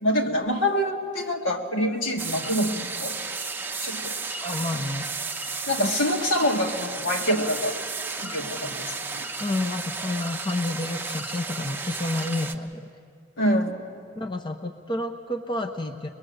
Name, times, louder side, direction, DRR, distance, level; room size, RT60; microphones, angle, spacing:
voice 1, 0.0-3.2 3.8-4.1 5.7-7.7 8.2-9.3 13.4-13.9, equal, 75° left, 2 dB, 2.0 m, -26 dB
sound 1, 2.2-12.6, right 4 dB, 10° right, 0.8 m, -33 dB
voice 2, 4.4-5.9 9.4-12.9 14.2-16.1, left 2 dB, 25° left, 4 dB, 0.8 m, -30 dB
24.0 x 21.0 x 8.0 m, 2.3 s
head